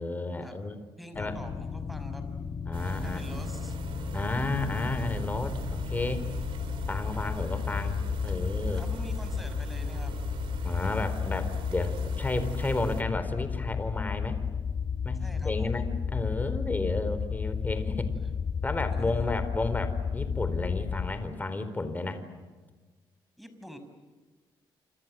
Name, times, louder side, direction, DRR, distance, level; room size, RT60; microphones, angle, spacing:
voice 1, 0.0-0.8 1.2-1.4 2.7-3.4 4.1-6.2 6.9-8.8 10.6-14.4 15.0-18.1 18.6-22.2, left 2 dB, 20° left, 10 dB, 4.2 m, -32 dB
voice 2, 1.0-2.3 3.0-3.8 8.7-10.2 15.2-15.8 18.9-19.3 23.4-23.8, equal, ahead, 8 dB, 5.8 m, -46 dB
sound 1, 1.1-21.1, left 6 dB, 45° left, 1.6 m, -33 dB
sound 2, 2.7-13.0, right 7 dB, 75° right, 3.3 m, -42 dB
29.0 x 27.0 x 7.7 m, 1.3 s
cardioid pair, 100°, 9 cm